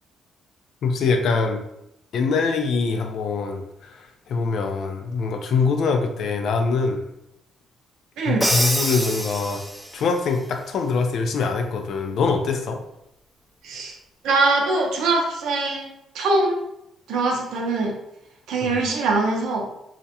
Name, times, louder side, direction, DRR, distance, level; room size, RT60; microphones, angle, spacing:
voice 1, 0.8-1.6 2.1-7.0 8.2-9.6 9.9-12.8 18.6-18.8, left 4 dB, 70° left, 5 dB, 0.4 m, -23 dB
Crash cymbal, 8.4-10.1, equal, ahead, 0.3 m, -25 dB
voice 2, 14.2-16.6 17.1-17.9 18.5-19.6, right 3 dB, 85° right, 1 dB, 0.5 m, -22 dB
2.4 x 2.1 x 2.7 m, 0.82 s
cardioid pair, 90°, 0 cm